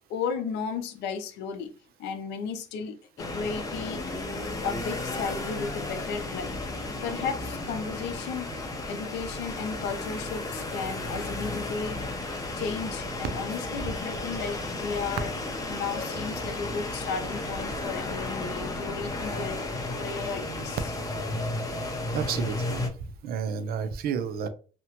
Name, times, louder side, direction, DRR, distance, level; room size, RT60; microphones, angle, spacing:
voice 1, 0.1-1.7 2.0-4.0 4.6-6.6 7.0-8.5 8.8-12.0 12.6-15.3 15.7-19.6 20.0-20.8, left 5 dB, 85° left, 0.5 m, -34 dB
sound 1, 3.2-22.9, left 2 dB, 20° left, 0.6 m, -33 dB
voice 2, 22.1-22.9 23.2-24.5, right 6 dB, 65° right, 0.5 m, -31 dB
2.8 x 2.1 x 2.9 m
cardioid pair, 110°, 17 cm